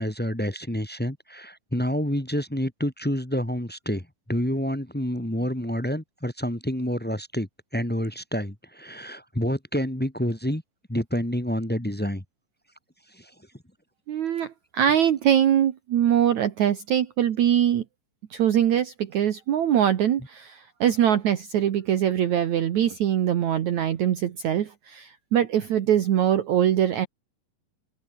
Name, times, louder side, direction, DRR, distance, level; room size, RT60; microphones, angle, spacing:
voice 1, 0.0-7.5 7.7-10.6 10.9-12.2 13.1-13.3, equal, 10° left, 0.6 m, -28 dB
voice 2, 14.1-17.8 18.3-27.1, right 10 dB, 60° right, 2.6 m, -23 dB
omnidirectional pair, 4.0 m